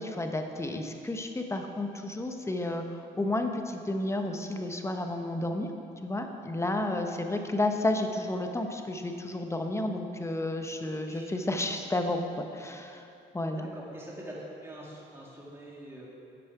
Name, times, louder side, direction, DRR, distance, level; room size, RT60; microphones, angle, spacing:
voice 1, 0.0-5.7 6.0-13.0 13.3-13.7, left 1 dB, 15° left, 5 dB, 0.9 m, -31 dB
voice 2, 11.0-11.4 13.6-16.1, right 1 dB, 10° right, -5 dB, 2.2 m, -44 dB
11.5 x 7.4 x 4.7 m, 2.6 s
cardioid pair, 90°, 20 cm